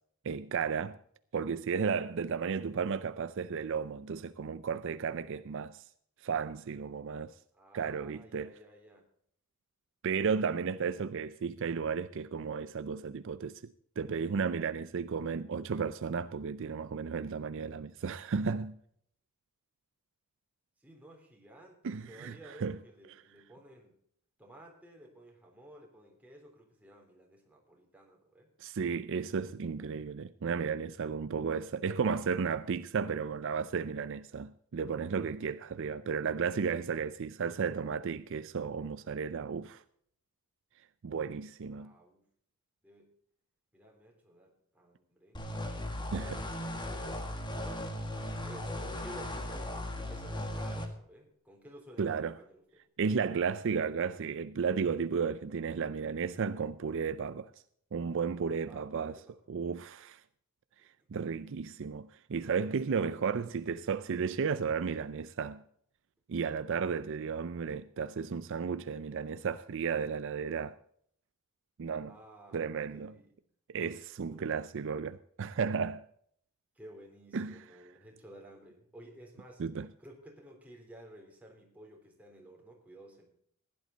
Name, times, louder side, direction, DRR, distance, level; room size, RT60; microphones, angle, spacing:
voice 1, 0.2-1.0 1.3-5.9 6.2-7.4 7.7-8.5 10.0-13.6 14.0-18.8 21.8-22.8 28.6-39.8 41.0-41.9 46.1-46.4 52.0-52.4 53.0-57.5 57.9-59.2 59.5-60.2 61.1-65.6 66.3-70.8 71.8-72.1 72.5-73.1 73.7-76.0 77.3-77.6 79.6-79.9, right 6 dB, 60° right, 0.4 m, -33 dB
voice 2, 7.5-9.0 20.8-23.9 24.4-28.5 41.7-42.3 42.8-43.1 43.7-45.4 45.8-52.6 58.7-59.4 60.8-60.9 72.1-73.4 74.2-74.6 76.8-79.6 80.0-83.3, right 1 dB, 5° right, 3.6 m, -54 dB
sound 1, 45.3-50.9, left 1 dB, 20° left, 1.6 m, -37 dB
16.0 x 11.0 x 4.0 m
head